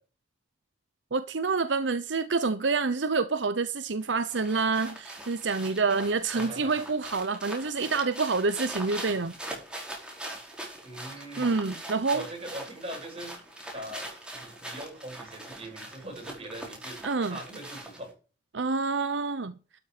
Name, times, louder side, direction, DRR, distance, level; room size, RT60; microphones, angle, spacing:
voice 1, 1.1-9.3 11.4-12.2 17.0-17.4 18.5-19.6, right 4 dB, 70° right, 0.8 m, -27 dB
sound 1, 4.0-18.1, right 1 dB, 5° right, 4.6 m, -42 dB
voice 2, 6.3-6.7 10.8-11.6 12.1-13.3 13.7-14.1 14.3-17.0 17.3-18.1, right 1 dB, 30° right, 7.5 m, -41 dB
12.5 x 7.3 x 5.0 m
head